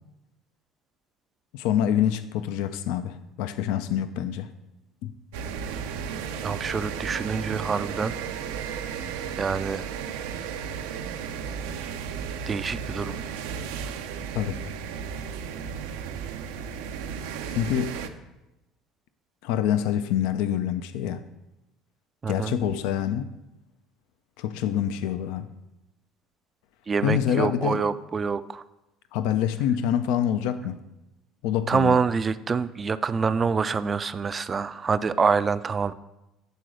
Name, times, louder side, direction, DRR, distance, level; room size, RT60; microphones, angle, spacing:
voice 1, 1.5-4.5 5.0-5.1 14.3-14.6 17.5-17.9 19.4-21.2 22.3-23.3 24.4-25.5 27.0-27.8 29.1-30.8 31.4-32.0, left 10 dB, 75° left, 11 dB, 0.4 m, -26 dB
sound 1, 5.3-18.1, right 7 dB, 90° right, 0.5 m, -34 dB
voice 2, 6.4-8.1 9.4-9.8 12.5-13.1 22.2-22.5 26.9-28.6 31.7-35.9, right 5 dB, 30° right, 14 dB, 0.3 m, -26 dB
8.2 x 3.9 x 6.2 m, 0.95 s
supercardioid pair, 95°, 0 cm